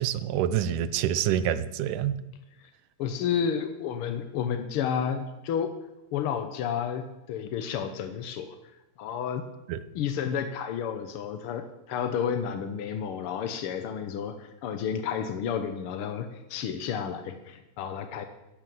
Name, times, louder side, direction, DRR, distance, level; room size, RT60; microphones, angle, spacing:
voice 1, 0.0-2.1 9.7-9.8, right 10 dB, 80° right, 14 dB, 2.3 m, -27 dB
voice 2, 3.0-5.7 6.1-8.5 9.0-9.4 9.9-18.2, left 7 dB, 70° left, 8 dB, 1.3 m, -31 dB
14.0 x 11.0 x 7.7 m, 0.94 s
omnidirectional pair, 3.6 m